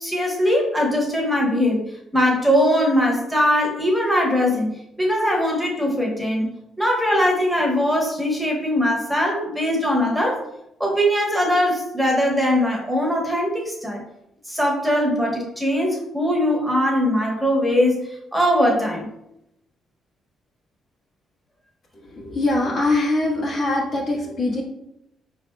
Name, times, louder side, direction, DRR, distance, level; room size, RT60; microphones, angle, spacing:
voice 1, 0.0-1.8 2.1-10.4 10.8-14.0 14.5-19.1, equal, ahead, -2 dB, 1.0 m, -21 dB
voice 2, 21.9-24.6, left 2 dB, 60° left, -4 dB, 1.4 m, -23 dB
4.7 x 3.4 x 2.2 m, 0.83 s
cardioid pair, 90°, 0 cm